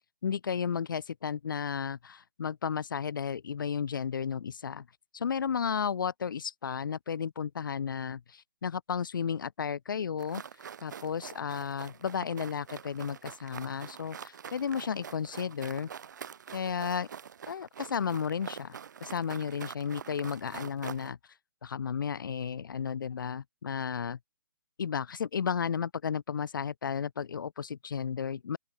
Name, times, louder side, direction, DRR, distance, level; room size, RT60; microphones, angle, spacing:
voice 1, 0.2-4.9 5.1-10.4 10.8-15.9 16.5-17.1 17.5-21.2 21.6-24.2 24.8-28.6, left 7 dB, 65° left, 0.8 m, -33 dB
sound 1, 10.2-21.1, right 8 dB, 55° right, 4.8 m, -45 dB
open air
hypercardioid pair, 145°, 12 cm